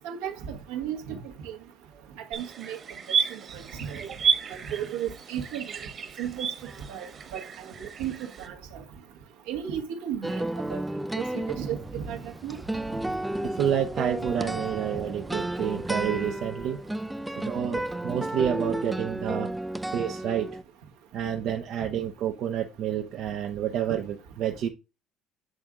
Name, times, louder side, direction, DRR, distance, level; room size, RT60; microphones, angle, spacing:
voice 1, 0.0-1.2 1.4-1.6 2.3-2.8 3.3-4.0 4.5-5.6 6.2-6.5 6.9-8.8 9.5-10.8 11.2-12.6, right 9 dB, 80° right, 1.2 m, -34 dB
sound 1, 2.3-8.5, right 7 dB, 45° right, 1.4 m, -32 dB
sound 2, 10.2-20.6, right 1 dB, 10° right, 0.4 m, -32 dB
voice 2, 13.4-16.8 17.4-19.5 19.9-20.6 21.1-24.7, right 9 dB, 60° right, 0.7 m, -29 dB
7.6 x 3.6 x 3.6 m
supercardioid pair, 75°, 0 cm